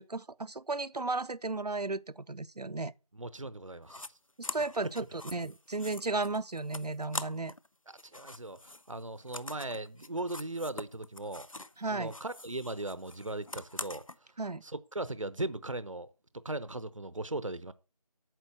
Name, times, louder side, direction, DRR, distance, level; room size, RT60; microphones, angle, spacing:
voice 1, 0.0-2.9 4.4-7.5 11.8-12.1 14.4-14.6, right 3 dB, 85° right, 0.7 m, -34 dB
voice 2, 3.1-4.1 8.1-11.5 11.9-14.0 14.6-16.1 16.3-17.7, right 2 dB, 55° right, 0.8 m, -38 dB
sound 1, 3.9-4.1 4.4-7.7 7.9-11.8 12.1-14.2, left 2 dB, 60° left, 0.7 m, -44 dB
9.2 x 6.5 x 7.7 m
figure-of-eight pair, 175°, 20 cm